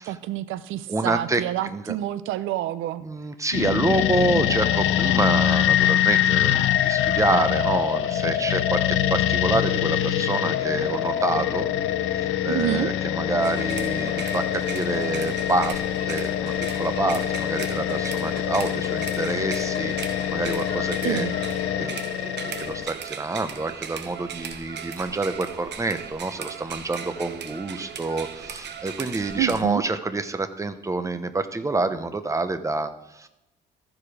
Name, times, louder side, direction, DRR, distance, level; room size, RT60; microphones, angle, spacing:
voice 1, 0.0-3.0 12.5-12.9 21.0-21.3 29.4-29.8, right 13 dB, 85° right, 15 dB, 0.5 m, -28 dB
voice 2, 0.9-2.0 3.0-11.7 12.1-15.8 16.1-21.3 21.8-22.0 22.2-33.3, right 2 dB, 15° right, 10 dB, 0.8 m, -27 dB
sound 1, 3.5-22.9, left 11 dB, 85° left, 0.7 m, -24 dB
sound 2, 13.4-29.6, right 7 dB, 60° right, 1.0 m, -38 dB
14.0 x 4.9 x 5.0 m, 0.89 s
cardioid pair, 90°, 20 cm